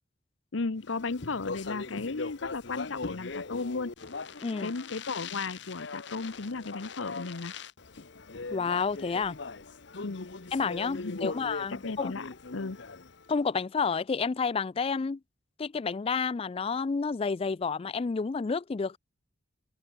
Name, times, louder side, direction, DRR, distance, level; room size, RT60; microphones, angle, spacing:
voice 1, 0.5-3.9 4.6-7.5 10.0-10.3 10.9-11.3 11.7-12.8, left 3 dB, 90° left, 0.9 m, -35 dB
Speech, 0.9-13.3, left 4 dB, 65° left, 1.0 m, -40 dB
voice 2, 4.4-4.7 8.5-9.4 10.5-12.1 13.3-15.2 15.6-19.0, left 5 dB, 30° left, 0.3 m, -30 dB
open air
head